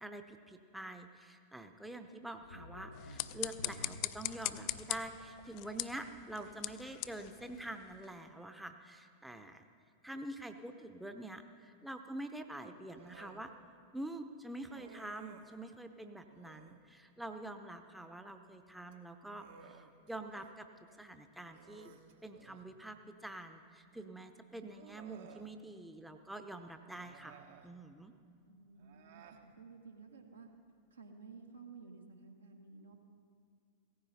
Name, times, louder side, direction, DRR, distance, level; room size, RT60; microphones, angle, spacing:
voice 1, 0.0-9.6 10.0-13.5 13.9-20.7 21.0-21.9 22.2-28.1, right 1 dB, 5° right, 6 dB, 0.7 m, -46 dB
sound 1, 2.4-7.1 7.4-7.5, left 1 dB, 75° left, 0.8 m, -54 dB
sound 2, 2.9-8.2, left 17 dB, 45° left, 0.4 m, -42 dB
Human voice, 12.9-13.4 14.7-15.6 16.3-16.8 18.8-20.5 20.9-21.0 21.5-22.7 23.9-24.0 24.7-25.5 26.9-27.7 28.8-29.4, right 6 dB, 55° right, 1.1 m, -57 dB
voice 2, 28.4-30.5 30.9-32.9, right 4 dB, 75° right, 2 dB, 1.6 m, -54 dB
17.0 x 14.5 x 4.1 m, 2.3 s
figure-of-eight pair, 90°, 0 cm